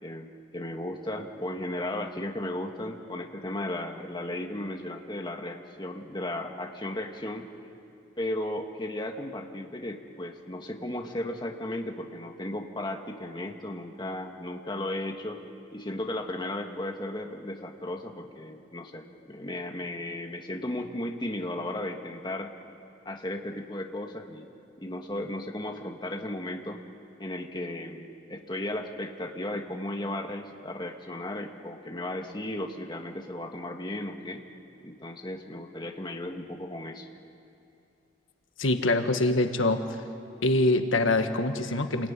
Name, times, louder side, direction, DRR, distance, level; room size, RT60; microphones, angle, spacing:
voice 1, 0.0-7.5 8.2-15.4 15.7-22.5 23.0-24.5 24.8-26.8 27.2-34.4 34.8-37.1, left 1 dB, 25° left, 3 dB, 1.6 m, -35 dB
voice 2, 38.6-39.8 40.4-42.1, left 2 dB, 90° left, 6 dB, 1.6 m, -24 dB
28.0 x 20.0 x 9.7 m, 2.7 s
head